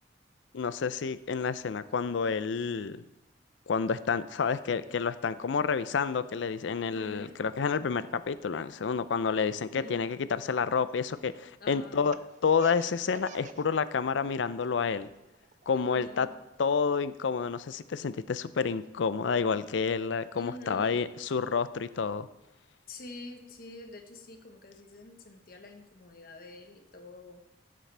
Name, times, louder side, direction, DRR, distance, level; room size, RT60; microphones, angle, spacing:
voice 1, 0.5-3.0 3.7-12.1 12.4-15.1 15.7-16.3 16.6-22.3, left 5 dB, 80° left, 14 dB, 0.5 m, -29 dB
voice 2, 6.9-7.4 9.7-10.1 11.6-12.2 15.7-16.4 20.4-21.1 22.9-27.4, left 2 dB, 50° left, 4 dB, 1.2 m, -47 dB
Laughter, 11.9-13.7 14.0-14.7 15.0-16.8, right 5 dB, 40° right, 0.5 m, -49 dB
14.5 x 7.5 x 3.4 m, 0.95 s
head